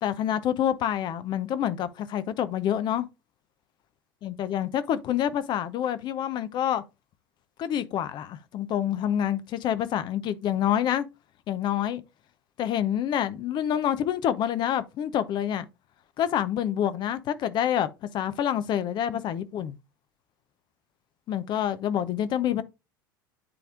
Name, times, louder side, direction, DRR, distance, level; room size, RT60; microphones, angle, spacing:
voice 1, 0.0-3.1 4.2-6.8 7.6-11.1 11.5-12.0 12.6-15.7 16.2-17.9 18.1-19.7 21.3-22.6, left 10 dB, 40° left, 0.8 m, -27 dB
9.9 x 3.5 x 3.6 m
figure-of-eight pair, 75°, 11 cm